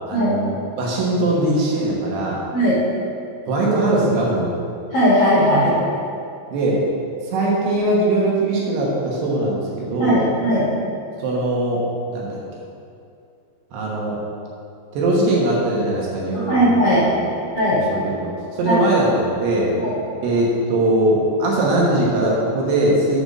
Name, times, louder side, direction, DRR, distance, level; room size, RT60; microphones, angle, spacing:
voice 1, 0.1-2.4 3.5-4.5 5.6-5.7 6.5-6.9 7.3-10.2 11.2-12.4 13.7-14.2 14.9-17.2 17.7-19.7 20.2-23.2, right 1 dB, 70° right, -4 dB, 3.1 m, -21 dB
voice 2, 4.9-5.7 10.0-10.6 16.5-17.0 17.5-17.8 18.7-18.8 19.8-20.0, equal, 50° left, -11 dB, 1.8 m, -17 dB
6.8 x 6.1 x 6.2 m, 2.5 s
omnidirectional pair, 5.2 m